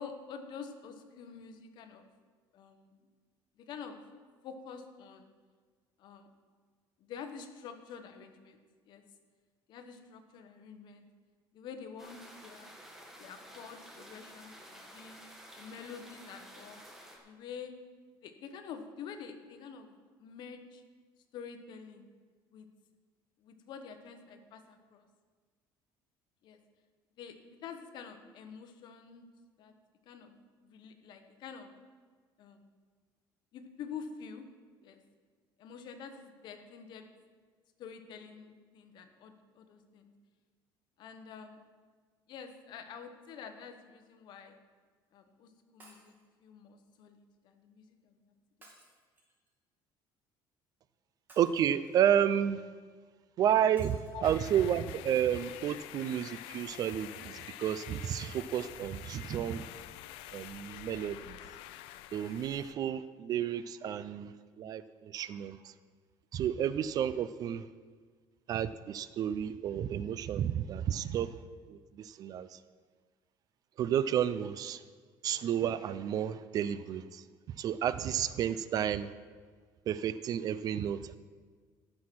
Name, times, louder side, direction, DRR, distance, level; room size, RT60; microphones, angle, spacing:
voice 1, 0.0-2.0 2.5-3.0 3.6-4.0 4.4-5.3 6.0-6.3 7.0-8.6 8.8-9.0 9.7-11.0 11.5-12.8 13.2-15.2 15.6-16.8 17.2-17.7 18.2-19.9 20.2-20.8 21.3-22.1 22.5-22.7 23.4-25.1 26.4-26.6 27.2-29.3 29.6-29.7 30.1-30.3 30.6-31.7 32.4-32.7 33.5-34.5 34.8-35.0 35.6-37.1 37.8-40.1 41.0-41.6 42.3-44.6 45.1-46.1 46.4-48.3 54.1-54.3, left 6 dB, 55° left, 7 dB, 1.2 m, -47 dB
sound 1, 12.0-17.2, equal, 5° right, 1.5 m, -52 dB
Shatter, 45.8-46.2 48.6-49.5 51.3-52.1 53.8-54.3 55.0-55.1 55.3-55.4, right 1 dB, 20° right, 2.4 m, -59 dB
voice 2, 51.4-52.6 53.4-59.7 60.3-61.4 62.1-65.7 66.3-67.7 68.5-71.4 71.7-72.6 73.8-74.8 75.2-77.2 77.6-79.1 79.9-81.2, right 9 dB, 45° right, 15 dB, 0.4 m, -31 dB
sound 2, 54.2-62.7, left 14 dB, 85° left, 0.5 m, -47 dB
14.0 x 6.2 x 6.0 m, 1.5 s
cardioid pair, 145°, 9 cm